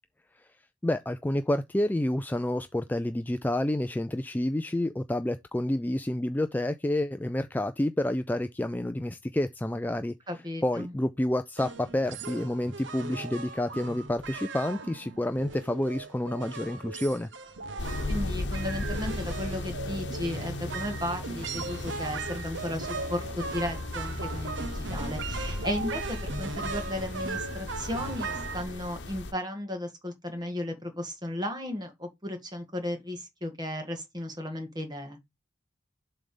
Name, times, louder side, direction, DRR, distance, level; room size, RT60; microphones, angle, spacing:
voice 1, 0.8-10.1 10.6-17.3, left 1 dB, 10° left, 0.3 m, -29 dB
voice 2, 10.3-10.9 18.1-35.2, left 1 dB, 20° right, 1.8 m, -35 dB
sound 1, 11.6-28.6, right 4 dB, 80° right, 0.8 m, -38 dB
sound 2, 17.8-29.3, left 2 dB, 70° left, 1.0 m, -36 dB
7.4 x 3.3 x 5.4 m
head